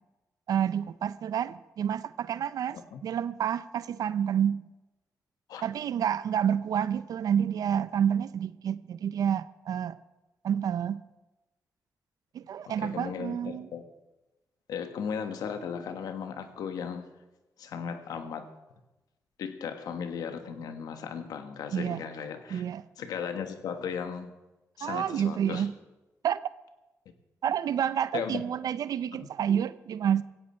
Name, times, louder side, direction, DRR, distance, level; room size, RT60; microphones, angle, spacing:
voice 1, 0.5-4.6 5.6-10.0 10.4-11.0 12.3-13.7 21.7-22.0 22.5-22.8 24.8-25.7 26.2-26.4 27.4-30.2, right 9 dB, 75° right, 15 dB, 0.5 m, -29 dB
voice 2, 12.7-13.8 14.7-17.1 17.6-18.5 19.4-22.6 23.0-24.3 24.8-25.7 28.1-28.4 29.1-29.3, left 7 dB, 90° left, 8 dB, 1.4 m, -36 dB
17.0 x 15.5 x 4.4 m, 1.0 s
cardioid pair, 70°, 6 cm